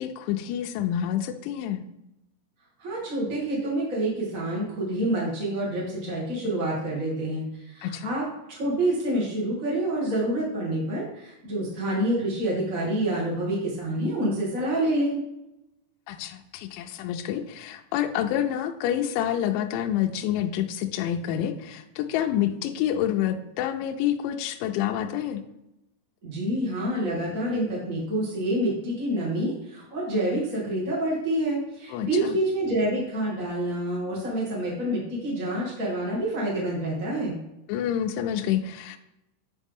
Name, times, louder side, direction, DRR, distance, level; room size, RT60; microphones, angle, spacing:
voice 1, 0.0-1.8 7.8-8.1 16.1-25.4 31.9-32.4 37.7-39.0, left 10 dB, 85° left, 5 dB, 2.7 m, -28 dB
voice 2, 2.8-8.3 8.5-15.2 26.2-37.3, right 1 dB, 50° right, -5 dB, 0.9 m, -27 dB
9.9 x 4.9 x 3.6 m, 0.90 s
omnidirectional pair, 5.9 m